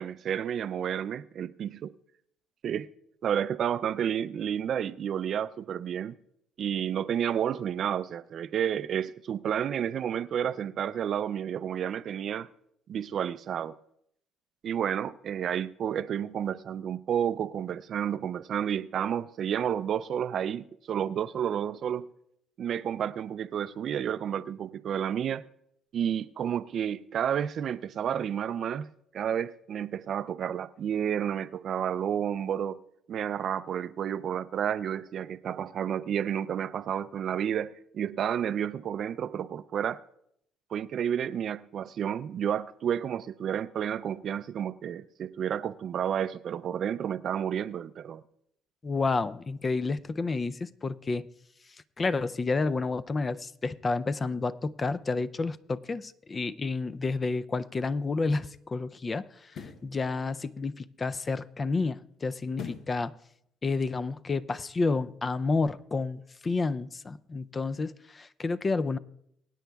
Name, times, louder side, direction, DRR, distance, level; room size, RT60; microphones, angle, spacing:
voice 1, 0.0-1.9 2.6-2.9 3.2-6.2 6.6-12.5 12.9-13.7 14.6-22.1 22.6-25.4 25.9-28.9 29.1-32.8 33.1-40.0 40.7-48.2, right 9 dB, 60° right, 0.4 m, -31 dB
voice 2, 48.8-51.3 52.0-63.1 63.6-69.0, left 3 dB, 30° left, 0.4 m, -30 dB
sound 1, 57.7-57.8 59.4-59.9 62.5-63.0 63.5-63.6, left 6 dB, 65° left, 0.8 m, -41 dB
23.5 x 9.1 x 2.3 m
supercardioid pair, 75°, 0 cm